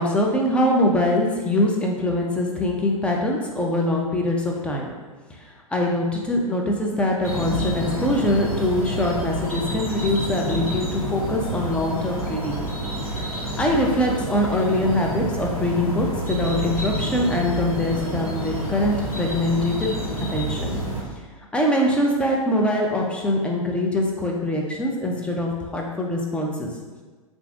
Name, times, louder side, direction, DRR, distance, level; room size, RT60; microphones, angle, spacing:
voice 1, 0.0-4.9 5.4-12.6 13.4-19.9 20.3-20.7 21.5-26.7, left 1 dB, 5° left, -1 dB, 0.5 m, -23 dB
sound 1, 7.2-21.0, right 2 dB, 80° left, 1.2 m, -28 dB
6.7 x 2.6 x 2.4 m, 1.4 s
figure-of-eight pair, 100°, 18 cm